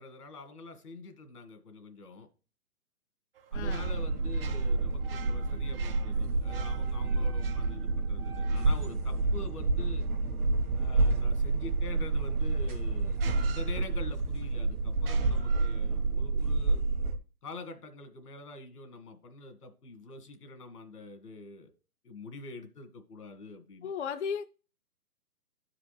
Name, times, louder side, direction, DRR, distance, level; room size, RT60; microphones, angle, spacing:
voice 1, 0.0-2.3 3.5-10.0 10.8-16.8 17.4-21.7 22.0-23.9, left 2 dB, 85° left, 1.8 m, -46 dB
sound 1, 3.3-9.9 12.3-12.4 13.1-14.3 14.9-16.1, right 7 dB, 40° right, 0.6 m, -49 dB
voice 2, 3.5-3.9 23.8-24.4, left 6 dB, 50° left, 0.5 m, -35 dB
sound 2, 3.5-17.2, right 3 dB, 65° right, 1.4 m, -29 dB
13.0 x 4.9 x 3.2 m
hypercardioid pair, 155°, 45 cm